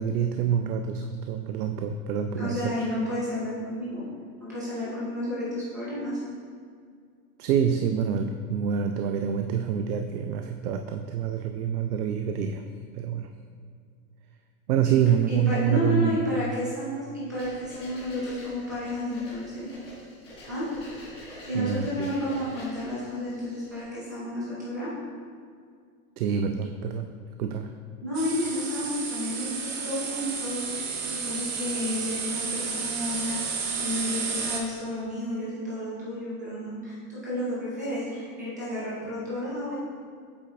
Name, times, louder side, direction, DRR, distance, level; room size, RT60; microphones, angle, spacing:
voice 1, 0.0-2.7 7.4-12.6 12.9-13.3 14.7-16.2 21.5-22.2 26.2-27.1 27.4-27.7, right 8 dB, 80° right, 6 dB, 0.5 m, -26 dB
voice 2, 2.4-4.0 4.4-6.2 14.8-15.0 15.3-19.7 20.5-20.7 21.5-24.9 28.0-33.4 33.8-39.8, left 1 dB, 15° right, -9 dB, 0.3 m, -31 dB
sound 1, 17.3-23.8, left 1 dB, 10° left, 0.9 m, -46 dB
sound 2, 28.1-34.6, right 5 dB, 45° right, 0.8 m, -32 dB
8.1 x 5.9 x 2.5 m, 2.1 s
supercardioid pair, 175°, 45 cm